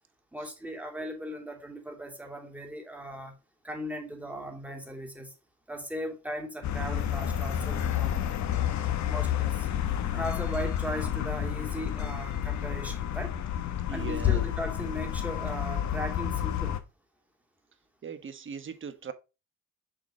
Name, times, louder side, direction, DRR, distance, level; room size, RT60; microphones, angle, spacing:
voice 1, 0.3-3.4 3.6-5.3 5.7-8.7 9.0-9.7 10.1-13.4 13.9-16.8, equal, 5° right, 2.6 m, -38 dB
sound 1, 6.6-16.8, left 10 dB, 65° left, 1.2 m, -30 dB
voice 2, 13.9-14.4 18.0-19.1, right 6 dB, 40° right, 1.2 m, -39 dB
7.0 x 5.3 x 2.8 m
cardioid pair, 90°, 30 cm